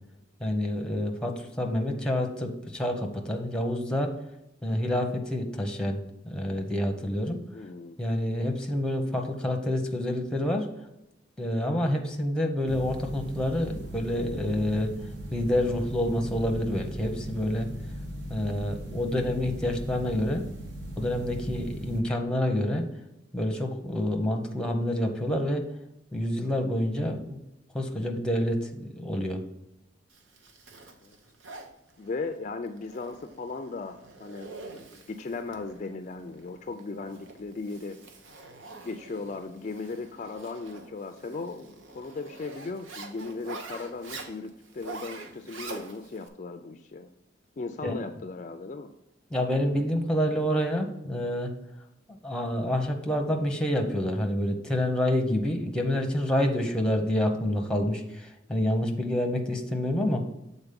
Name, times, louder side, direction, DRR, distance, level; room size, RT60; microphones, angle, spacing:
voice 1, 0.4-4.1 4.6-7.4 8.0-10.7 11.4-14.9 15.3-17.7 18.3-20.4 21.0-22.9 23.3-25.7 26.1-27.4 27.7-29.4 47.8-48.0 49.3-51.5 52.2-60.2, left 1 dB, 5° left, 3 dB, 0.8 m, -28 dB
voice 2, 7.5-8.0 31.0-31.2 32.0-34.5 34.9-38.0 38.8-47.1 47.6-48.9, left 3 dB, 40° left, 7 dB, 0.4 m, -37 dB
sound 1, 12.7-22.0, equal, 65° right, 1.3 m, -38 dB
Zipper (clothing), 30.1-46.3, right 3 dB, 85° right, 0.9 m, -45 dB
7.1 x 4.0 x 5.2 m, 0.88 s
head